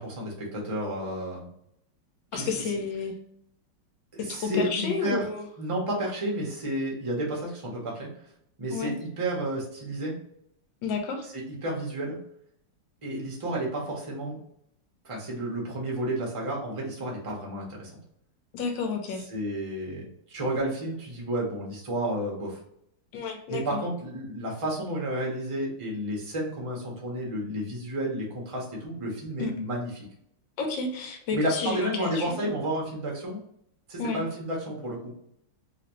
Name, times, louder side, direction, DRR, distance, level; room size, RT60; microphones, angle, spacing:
voice 1, 0.0-1.5 2.3-2.7 4.1-5.3 5.6-8.1 8.6-10.2 11.3-12.2 13.0-14.4 15.0-17.9 19.3-22.6 23.5-30.0 31.3-33.4 33.9-35.2, right 1 dB, 30° right, -2 dB, 0.5 m, -31 dB
voice 2, 2.3-3.1 4.2-5.4 8.7-8.9 10.8-11.2 18.5-19.2 23.1-23.8 29.4-29.5 30.6-32.5 34.0-34.2, left 4 dB, 70° left, 3 dB, 1.3 m, -31 dB
3.2 x 3.1 x 3.0 m, 0.72 s
omnidirectional pair, 2.4 m